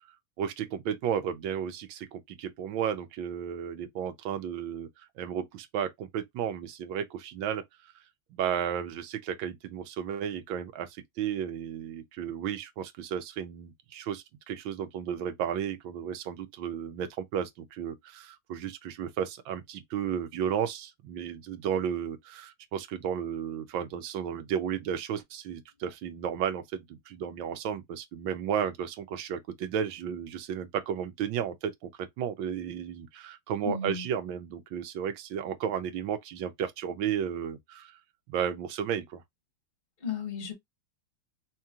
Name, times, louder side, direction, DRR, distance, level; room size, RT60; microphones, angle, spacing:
voice 1, 0.4-7.6 8.3-37.9 38.3-39.2, right 8 dB, 75° right, 1.5 m, -33 dB
voice 2, 33.6-34.0 40.0-40.5, left 6 dB, 30° left, 1.5 m, -34 dB
3.6 x 3.0 x 3.5 m
omnidirectional pair, 2.2 m